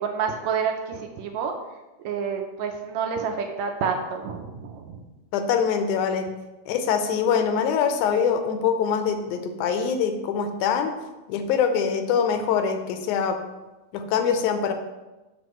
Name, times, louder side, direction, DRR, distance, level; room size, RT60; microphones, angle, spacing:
voice 1, 0.0-1.5 2.0-5.0, right 6 dB, 75° right, 3 dB, 1.8 m, -28 dB
voice 2, 5.3-6.3 6.7-11.0 11.3-13.4 13.9-14.7, left 7 dB, 85° left, 7 dB, 2.1 m, -24 dB
7.4 x 6.3 x 3.0 m, 1.1 s
omnidirectional pair, 3.4 m